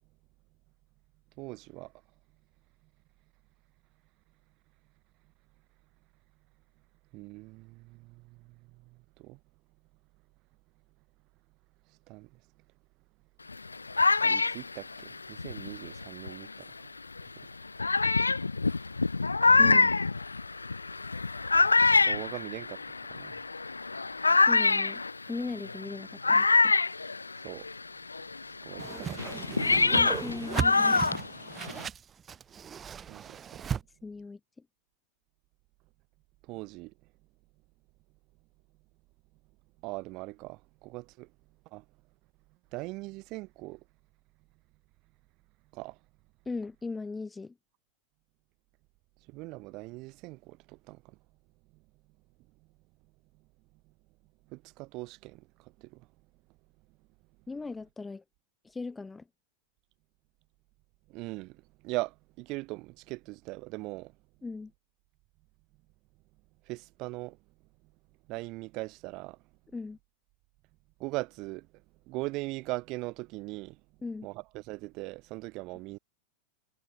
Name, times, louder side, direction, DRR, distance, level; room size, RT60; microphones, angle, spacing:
voice 1, 1.4-1.9 7.1-8.5 9.2-9.4 12.1-12.3 14.2-16.7 22.0-22.8 23.1-23.3 27.4-27.7 28.6-29.4 33.1-33.6 36.5-36.9 39.8-41.3 41.7-41.8 42.7-43.8 45.7-46.0 49.3-51.0 54.5-55.5 55.8-56.0 61.1-64.1 66.7-67.4 68.3-69.4 71.0-71.7 72.1-73.8 74.2-76.0, right 23 dB, 40° right, 3.2 m, -40 dB
sound 1, 13.5-16.5 17.2-17.3 17.8-27.8 28.1-31.9, left 3 dB, 80° left, 0.5 m, -26 dB
voice 2, 19.6-19.9 24.5-26.8 29.9-31.2 34.0-34.4 46.5-47.5 57.5-58.2 58.6-59.2 64.4-64.7 69.7-70.0 74.0-74.3, left 3 dB, 10° left, 0.9 m, -38 dB
Whoosh swoosh swish, 28.8-33.8, right 7 dB, 20° right, 1.9 m, -36 dB
figure-of-eight pair, 90°, 0 cm